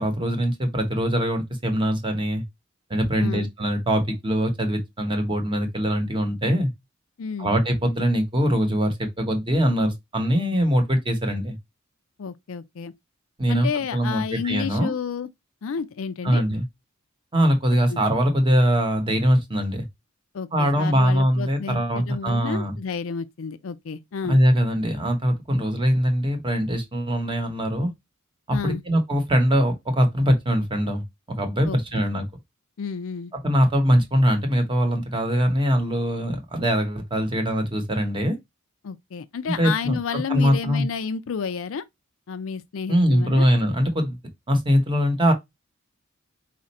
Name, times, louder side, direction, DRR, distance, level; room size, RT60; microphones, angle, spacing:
voice 1, 0.0-2.4 2.9-6.7 7.4-11.6 13.4-14.9 16.2-16.6 17.3-19.9 20.5-22.8 24.3-27.9 28.5-31.0 31.3-32.2 33.4-38.4 39.6-40.9 42.9-44.2 44.5-45.3, equal, 25° right, 0.9 m, -22 dB
voice 2, 3.2-3.5 7.2-7.6 12.2-12.9 13.5-15.3 15.6-16.4 17.9-18.0 20.3-24.4 28.5-28.8 31.6-32.0 32.8-33.3 38.8-41.8 42.3-43.5, left 6 dB, 70° left, 0.4 m, -31 dB
4.2 x 2.5 x 4.1 m
head